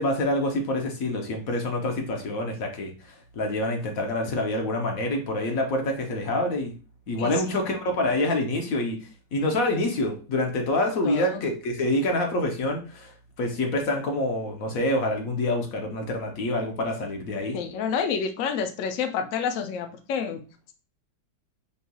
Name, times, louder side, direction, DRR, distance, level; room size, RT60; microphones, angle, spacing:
voice 1, 0.0-2.9 3.4-6.7 7.1-9.0 9.3-13.1 13.4-17.6, left 1 dB, 60° left, 2 dB, 1.0 m, -26 dB
voice 2, 11.0-11.4 17.5-20.4, left 6 dB, 80° left, 7 dB, 0.7 m, -28 dB
5.3 x 3.2 x 2.2 m, 0.35 s
omnidirectional pair, 2.0 m